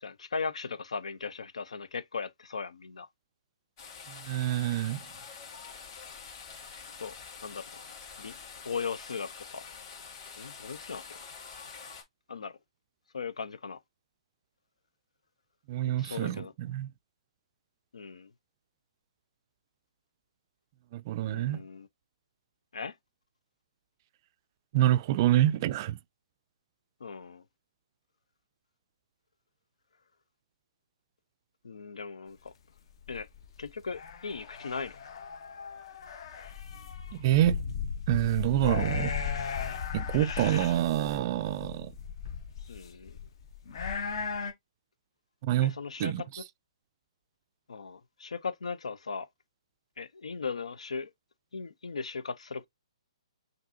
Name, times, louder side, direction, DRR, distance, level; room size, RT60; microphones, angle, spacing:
voice 1, 0.0-3.1 7.0-7.1 7.4-7.8 8.2-8.3 8.6-9.6 10.4-11.2 12.3-12.5 13.1-13.8 16.0-16.5 17.9-18.3 21.2-21.9 22.7-22.9 27.0-27.4 31.6-32.5 33.1-33.3 33.6-35.0 42.7-43.2 45.6-46.2 47.7-49.3 50.0-51.1 51.5-52.7, left 5 dB, 85° left, 0.7 m, -38 dB
sound 1, 3.8-12.0, left 6 dB, 40° left, 2.2 m, -46 dB
voice 2, 4.1-5.0 15.7-16.9 20.9-21.6 24.7-26.0 37.1-37.6 38.1-39.1 39.9-41.9 45.4-45.7 46.0-46.2, right 13 dB, 35° right, 0.3 m, -27 dB
sound 2, 32.9-44.5, left 6 dB, 55° left, 1.0 m, -37 dB
5.9 x 2.7 x 2.7 m
hypercardioid pair, 145°, 3 cm